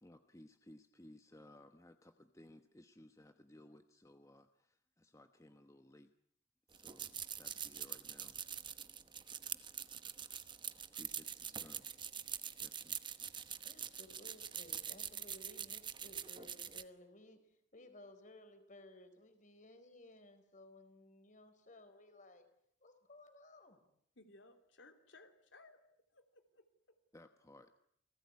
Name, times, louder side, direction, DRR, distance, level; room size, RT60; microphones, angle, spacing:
voice 1, 0.0-6.1 6.7-8.4 9.5-10.0 10.3-10.4 10.9-11.9 12.6-13.0 27.1-27.8, left 1 dB, 15° left, 8 dB, 1.1 m, -60 dB
sound 1, 6.7-16.8, right 8 dB, 25° right, 1.0 m, -44 dB
voice 2, 13.6-22.5 22.8-23.8, left 1 dB, 40° left, 8 dB, 4.5 m, -58 dB
voice 3, 24.2-25.8 26.1-27.0, left 2 dB, 75° left, 7 dB, 3.0 m, -61 dB
29.0 x 19.0 x 9.6 m, 0.71 s
head